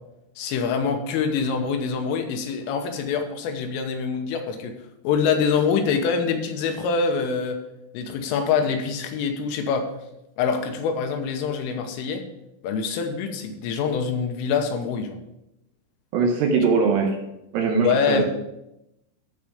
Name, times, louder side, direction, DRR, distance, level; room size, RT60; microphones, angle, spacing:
voice 1, 0.4-4.8 5.0-7.6 7.9-10.0 10.4-12.3 12.6-15.2 17.8-18.2, left 5 dB, 85° left, 5 dB, 3.5 m, -25 dB
voice 2, 16.1-17.2 17.5-18.2, right 4 dB, 75° right, 0 dB, 2.7 m, -21 dB
14.5 x 4.8 x 5.0 m, 0.87 s
omnidirectional pair, 5.8 m